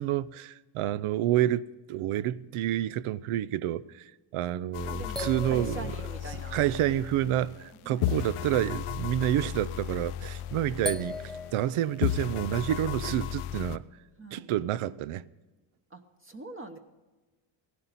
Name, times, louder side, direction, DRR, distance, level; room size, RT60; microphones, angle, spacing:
voice 1, 0.0-5.9 6.3-13.8 14.3-15.2, right 12 dB, 80° right, 0.6 m, -29 dB
sound 1, 4.7-7.7 8.0-11.7 12.0-13.8, left 11 dB, 85° left, 0.7 m, -34 dB
voice 2, 4.9-6.6 7.8-8.7 10.8-11.2 11.4-11.6 14.2-14.5 15.9-16.8, right 3 dB, 25° right, 1.0 m, -44 dB
sound 2, 5.1-7.1 9.5-9.6 10.8-12.3, left 1 dB, ahead, 0.5 m, -39 dB
16.0 x 11.5 x 4.1 m
cardioid pair, 115°, 50 cm